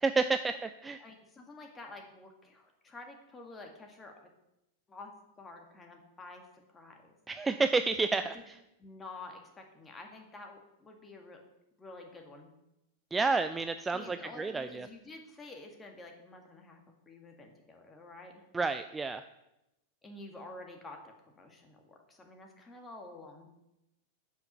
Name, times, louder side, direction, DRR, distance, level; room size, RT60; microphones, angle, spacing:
voice 1, 0.0-1.0 7.3-8.5 13.1-14.9 18.5-19.2, right 4 dB, 15° right, 10 dB, 0.4 m, -30 dB
voice 2, 1.0-4.3 4.9-6.5 6.7-7.1 8.2-8.4 8.8-11.4 11.8-12.5 13.9-18.5 20.0-23.5, left 2 dB, 15° left, 3 dB, 1.9 m, -49 dB
9.1 x 5.6 x 6.7 m, 0.90 s
figure-of-eight pair, 90°, 0 cm